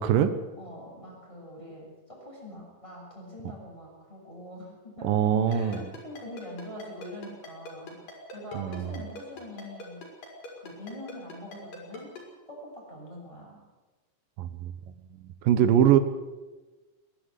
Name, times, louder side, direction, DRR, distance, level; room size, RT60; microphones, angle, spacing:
voice 1, 0.0-0.3 5.0-5.9 8.5-9.0 14.4-14.7 15.4-16.0, right 10 dB, 90° right, 11 dB, 2.9 m, -22 dB
voice 2, 0.5-10.0 10.6-12.1 12.5-13.6, left 1 dB, 10° left, -3 dB, 7.9 m, -44 dB
Ringtone, 5.5-12.2, left 2 dB, 85° left, 6.7 m, -42 dB
22.0 x 12.0 x 9.8 m, 1.2 s
omnidirectional pair, 3.8 m